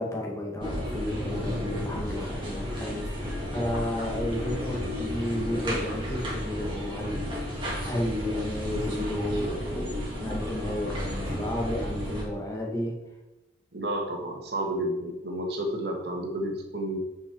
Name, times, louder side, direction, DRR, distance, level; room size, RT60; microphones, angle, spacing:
voice 1, 0.0-12.9, left 1 dB, 15° left, -2 dB, 1.8 m, -32 dB
sound 1, 0.6-12.2, left 1 dB, 25° right, 2.3 m, -33 dB
voice 2, 13.7-17.0, right 1 dB, 55° right, 1 dB, 1.8 m, -31 dB
9.1 x 5.6 x 4.6 m, 1.0 s
head